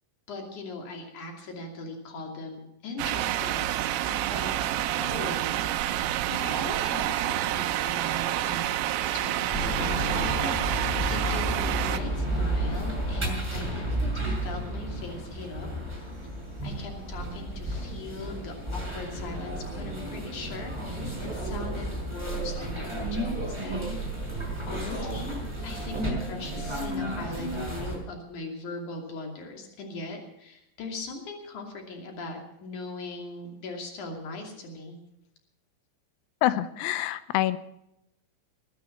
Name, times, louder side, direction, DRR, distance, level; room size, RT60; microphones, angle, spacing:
voice 1, 0.3-3.8 4.1-8.8 9.1-15.7 16.6-23.8 24.7-35.0, left 2 dB, 45° left, 2 dB, 3.5 m, -40 dB
sound 1, 3.0-12.0, right 13 dB, 85° right, 3.6 m, -28 dB
Sloane Square - Peter Jones Dept store, 9.5-28.0, right 1 dB, 5° right, 4.2 m, -32 dB
voice 2, 36.4-37.6, left 14 dB, 85° left, 14 dB, 3.5 m, -26 dB
20.0 x 10.5 x 5.9 m, 0.83 s
omnidirectional pair, 6.0 m